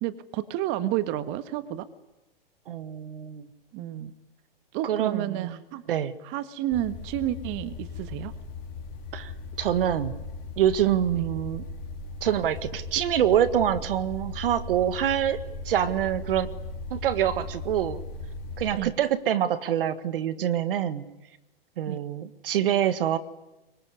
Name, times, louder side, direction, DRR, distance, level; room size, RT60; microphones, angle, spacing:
voice 1, 0.0-1.9 3.7-4.1 4.7-5.8 6.2-8.3 11.1-11.3 18.8-18.9 21.9-22.0, right 13 dB, 40° right, 11 dB, 1.7 m, -30 dB
voice 2, 2.7-3.5 4.8-5.5 5.9-6.1 9.1-9.3 9.6-10.1 10.6-11.6 12.2-16.5 16.9-18.0 18.6-21.0 21.8-23.2, right 10 dB, 65° right, 13 dB, 1.8 m, -25 dB
sound 1, 6.7-18.8, left 3 dB, 45° left, 4.0 m, -38 dB
25.5 x 24.0 x 9.8 m, 0.94 s
hypercardioid pair, 115°, 30 cm